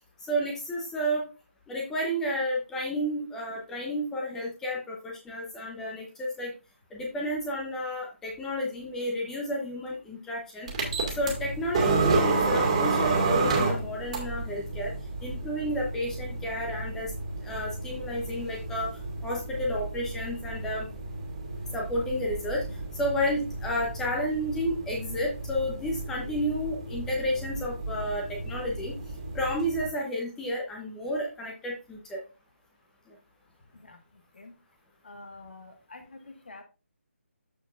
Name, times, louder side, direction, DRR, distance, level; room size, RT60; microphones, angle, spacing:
voice 1, 0.3-1.2 1.7-6.5 6.9-10.7 11.2-14.9 15.2-17.1 17.4-18.9 19.2-20.9 21.7-22.6 22.9-28.9 29.3-32.2, equal, 5° left, -2 dB, 0.9 m, -31 dB
sound 1, 10.7-29.9, right 3 dB, 30° right, 2.2 m, -31 dB
voice 2, 33.7-34.5 35.0-36.6, left 2 dB, 55° left, 6 dB, 1.6 m, -48 dB
13.5 x 4.5 x 2.5 m, 0.31 s
figure-of-eight pair, 150°, 7 cm